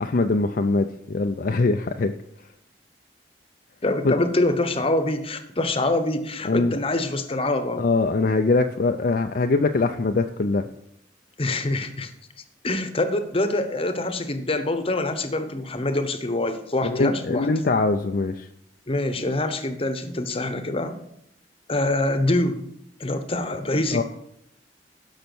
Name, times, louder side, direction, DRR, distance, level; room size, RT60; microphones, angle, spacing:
voice 1, 0.0-2.1 4.0-4.1 6.4-6.8 7.8-10.7 16.8-18.5 23.9-24.0, left 3 dB, 55° left, 5 dB, 0.5 m, -22 dB
voice 2, 3.8-7.8 11.4-12.1 12.6-17.5 18.9-21.0 21.7-22.7 23.0-24.0, left 2 dB, 30° left, 9 dB, 1.0 m, -25 dB
12.5 x 5.7 x 6.1 m, 0.76 s
head